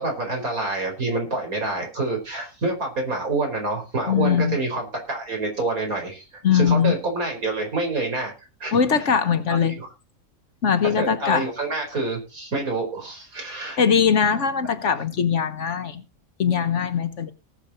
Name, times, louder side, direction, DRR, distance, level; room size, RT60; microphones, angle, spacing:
voice 1, 0.0-8.3 8.6-8.8 9.5-9.9 10.8-13.8, right 2 dB, 85° right, 5.2 m, -27 dB
voice 2, 4.1-4.6 6.4-7.0 8.7-9.7 10.6-11.4 13.8-16.0 16.4-17.3, left 7 dB, 60° left, 1.4 m, -21 dB
19.0 x 7.2 x 4.3 m
omnidirectional pair, 1.5 m